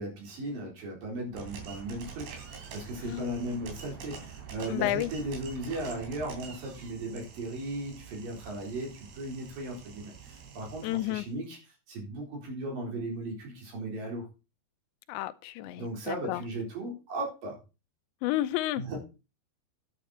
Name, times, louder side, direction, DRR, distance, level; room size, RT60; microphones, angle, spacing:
voice 1, 0.0-11.6 11.9-14.3 15.8-17.6 18.8-19.0, right 1 dB, 55° right, 5.6 m, -37 dB
sound 1, 1.3-11.3, right 6 dB, 70° right, 4.9 m, -46 dB
voice 2, 3.0-3.6 4.6-5.1 10.8-11.3 15.1-16.4 18.2-18.8, left 15 dB, 90° left, 3.0 m, -31 dB
10.0 x 9.2 x 4.3 m
omnidirectional pair, 5.0 m